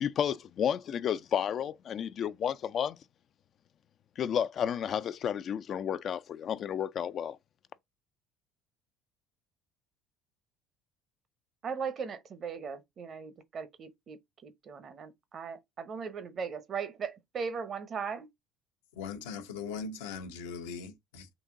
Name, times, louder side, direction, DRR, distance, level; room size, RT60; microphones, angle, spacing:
voice 1, 0.0-3.0 4.2-7.4, left 8 dB, 50° left, 0.3 m, -31 dB
voice 2, 11.6-18.3, right 6 dB, 45° right, 0.9 m, -38 dB
voice 3, 18.9-21.3, left 5 dB, 80° left, 0.8 m, -40 dB
3.9 x 2.8 x 3.6 m
hypercardioid pair, 65°, 0 cm